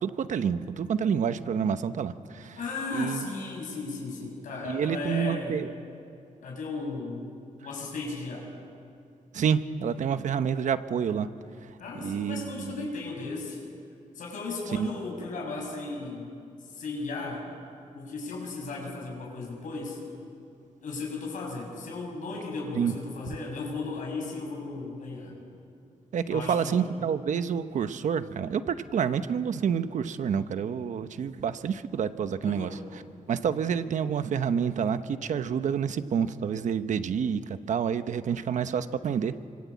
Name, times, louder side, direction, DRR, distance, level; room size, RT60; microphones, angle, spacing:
voice 1, 0.0-2.6 2.9-3.3 4.6-5.7 9.3-11.3 11.6-11.7 12.0-12.9 14.7-14.9 22.7-22.9 26.1-33.0 33.3-39.4, right 7 dB, 70° right, 11 dB, 1.1 m, -28 dB
voice 2, 2.6-5.7 6.4-7.3 7.6-8.5 11.8-13.6 14.2-16.3 16.7-17.5 17.9-20.1 20.8-25.4 26.3-26.8 32.4-32.8, left 3 dB, 75° left, 0 dB, 7.1 m, -35 dB
27.5 x 25.0 x 8.5 m, 2.4 s
wide cardioid pair, 140°, 13 cm